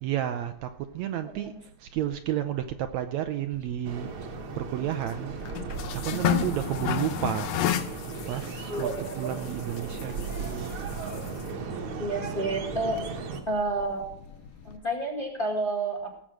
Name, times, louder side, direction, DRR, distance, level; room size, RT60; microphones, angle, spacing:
voice 1, 0.0-1.5 1.8-4.1 4.6-5.4 5.9-7.5 8.3-10.7, right 11 dB, 75° right, 1.8 m, -31 dB
voice 2, 1.2-1.6 6.2-6.4 8.7-9.4 12.0-13.0 13.5-14.1 14.6-16.2, right 2 dB, 20° left, 1.7 m, -30 dB
sound 1, 3.5-14.8, left 11 dB, 70° left, 1.7 m, -35 dB
sound 2, 3.8-13.4, right 5 dB, 55° right, 1.9 m, -36 dB
18.0 x 7.4 x 6.2 m
omnidirectional pair, 3.6 m